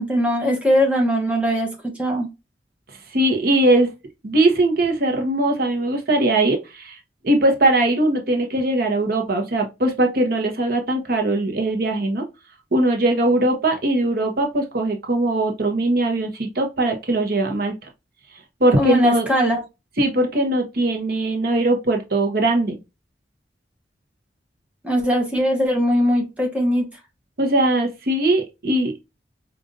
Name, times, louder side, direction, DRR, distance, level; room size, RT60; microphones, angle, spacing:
voice 1, 0.0-2.3 18.8-19.6 24.8-26.9, equal, 10° right, 1.0 m, -20 dB
voice 2, 3.1-3.9 4.2-7.0 7.2-12.2 12.7-17.7 18.6-19.3 20.0-22.8 27.4-28.9, right 1 dB, 60° right, 0.9 m, -20 dB
4.9 x 2.5 x 2.6 m
head